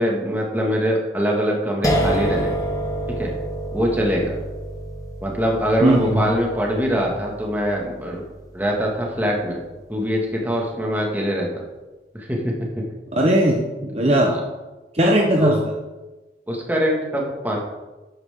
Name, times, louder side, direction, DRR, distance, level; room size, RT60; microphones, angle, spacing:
voice 1, 0.0-2.6 3.2-3.3 3.7-4.4 5.2-8.2 8.5-9.6 9.9-11.5 12.1-12.8 14.3-14.4 15.4-15.6 16.5-17.6, equal, 10° right, -2 dB, 2.0 m, -23 dB
sound 1, 1.8-8.8, right 1 dB, 20° left, 1.3 m, -28 dB
voice 2, 5.8-6.2 13.1-14.3 14.9-15.5, right 1 dB, 35° right, 0 dB, 1.0 m, -18 dB
12.5 x 9.4 x 3.8 m, 1.1 s
head